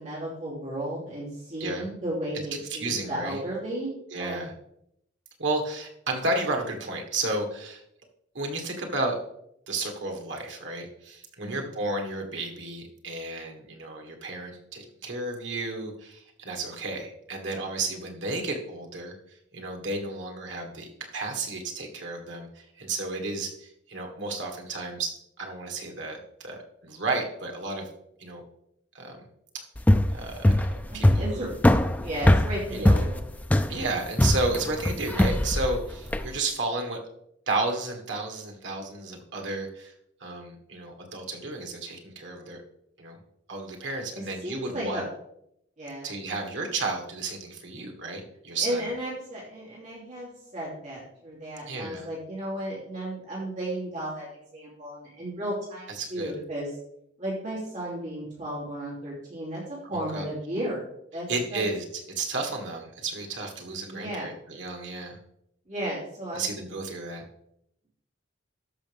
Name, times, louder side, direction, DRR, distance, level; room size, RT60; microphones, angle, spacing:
voice 1, 0.0-4.4 11.4-11.7 30.9-31.5 32.0-33.2 44.1-45.0 45.8-46.1 48.6-56.7 57.2-60.8 61.1-61.6 63.9-64.3 65.7-66.5, right 1 dB, 40° right, -6 dB, 3.0 m, -34 dB
voice 2, 2.7-3.4 4.1-4.5 5.4-7.8 8.3-9.1 9.7-25.1 25.4-27.9 28.2-28.4 28.9-29.2 30.1-30.5 30.9-31.5 32.7-33.0 33.7-37.0 37.5-39.9 40.2-42.6 43.0-43.2 43.5-45.0 46.0-48.8 51.7-52.1 56.0-56.3 59.8-60.2 61.3-61.8 62.1-65.2 66.3-67.2, right 2 dB, 75° right, 2 dB, 1.7 m, -32 dB
sound 1, 29.8-36.3, left 1 dB, 10° left, 0.3 m, -22 dB
13.0 x 5.6 x 3.5 m, 0.76 s
head